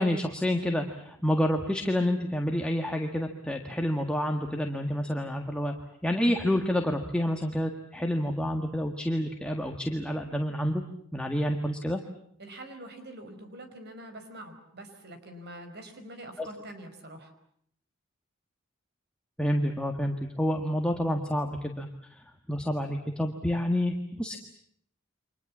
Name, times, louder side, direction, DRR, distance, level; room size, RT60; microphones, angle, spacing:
voice 1, 0.0-5.7 6.0-10.8 11.1-12.0 16.4-16.5 19.4-22.2 22.5-24.4, equal, 5° left, 3 dB, 1.7 m, -28 dB
voice 2, 12.4-17.3, right 1 dB, 55° right, 7 dB, 5.0 m, -45 dB
29.5 x 25.0 x 7.4 m, 0.69 s
head